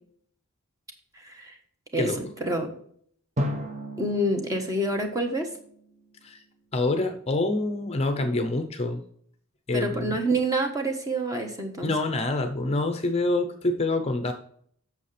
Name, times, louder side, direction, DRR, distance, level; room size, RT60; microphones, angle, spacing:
voice 1, 1.1-1.6 1.9-2.7 4.0-5.5 9.7-11.9, right 1 dB, 15° right, 4 dB, 1.2 m, -27 dB
Drum, 3.4-6.3, equal, 30° right, 1.1 m, -34 dB
voice 2, 6.7-9.0 9.7-10.2 11.8-14.3, left 2 dB, 30° left, 7 dB, 0.6 m, -26 dB
8.3 x 6.6 x 3.3 m, 0.62 s
head